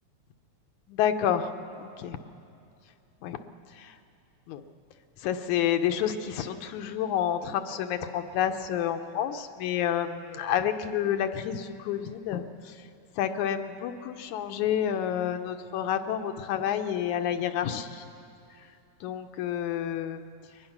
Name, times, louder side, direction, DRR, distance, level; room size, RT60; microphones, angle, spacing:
voice 1, 0.9-1.5 1.8-2.2 3.2-3.4 3.7-4.0 4.5-4.6 5.2-12.8 13.2-18.1 19.0-20.3, left 9 dB, 75° left, 8 dB, 2.0 m, -29 dB
22.5 x 20.5 x 5.9 m, 2.6 s
omnidirectional pair, 3.6 m